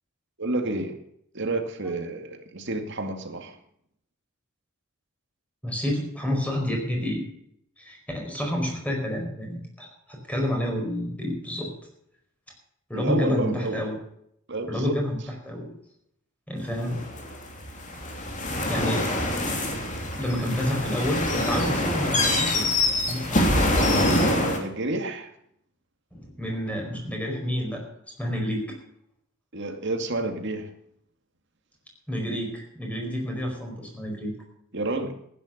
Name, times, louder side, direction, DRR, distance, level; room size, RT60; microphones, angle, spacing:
voice 1, 0.4-1.0 1.3-3.6 12.9-13.9 14.5-15.0 23.8-25.3 29.5-30.7 34.7-35.2, right 2 dB, 55° right, 5 dB, 2.2 m, -30 dB
voice 2, 5.6-7.3 7.8-11.7 12.9-14.0 14.7-15.2 15.4-15.7 16.5-17.0 18.7-19.1 20.1-22.7 23.1-23.4 26.1-27.8 28.2-28.8 32.1-34.3, equal, 5° left, 1 dB, 4.8 m, -29 dB
sound 1, 16.8-24.6, left 1 dB, 35° left, 3.1 m, -25 dB
15.5 x 10.5 x 6.6 m, 0.71 s
head